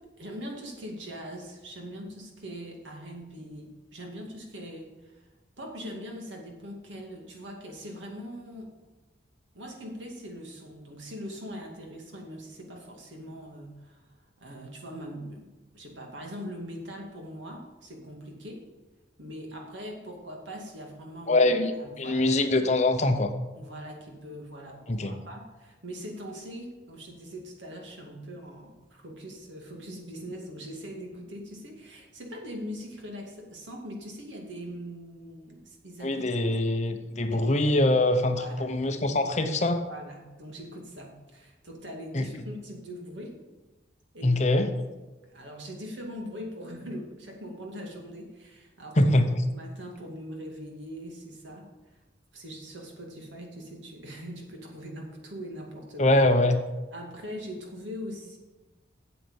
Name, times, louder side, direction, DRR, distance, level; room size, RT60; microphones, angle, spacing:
voice 1, 0.2-5.3 5.6-8.7 9.5-14.2 14.4-18.7 19.2-21.5 21.8-22.3 23.5-36.6 37.3-37.6 38.3-38.7 39.9-43.4 44.1-44.4 45.3-49.2 49.5-52.0 52.3-56.2 56.9-58.4, equal, 85° right, 1 dB, 2.3 m, -41 dB
voice 2, 21.3-21.7 22.0-23.3 24.9-25.1 36.0-39.8 42.1-42.3 44.2-44.7 49.0-49.4 56.0-56.6, left 1 dB, 40° left, 7 dB, 0.9 m, -23 dB
8.4 x 7.8 x 7.2 m, 1.1 s
head